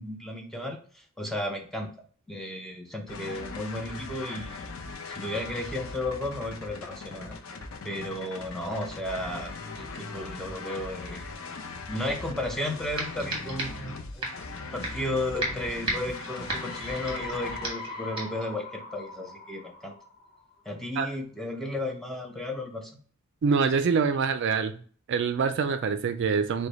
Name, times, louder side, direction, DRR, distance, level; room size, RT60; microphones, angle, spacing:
voice 1, 0.0-1.9 2.3-4.6 5.1-7.4 7.8-11.3 11.9-14.4 14.7-19.9 20.7-22.9, left 1 dB, ahead, 2 dB, 0.6 m, -34 dB
sound 1, 3.1-17.7, left 3 dB, 70° left, 0.6 m, -40 dB
sound 2, 12.4-12.5 13.0-13.9 14.2-14.5 14.8-15.1 15.4-17.3 17.6-17.9 18.2-18.4, right 1 dB, 25° right, 1.3 m, -34 dB
sound 3, 16.1-20.7, left 3 dB, 45° left, 0.9 m, -41 dB
voice 2, 23.4-24.8 25.1-26.7, right 5 dB, 55° right, 9 dB, 0.4 m, -25 dB
4.9 x 2.2 x 4.0 m, 0.43 s
head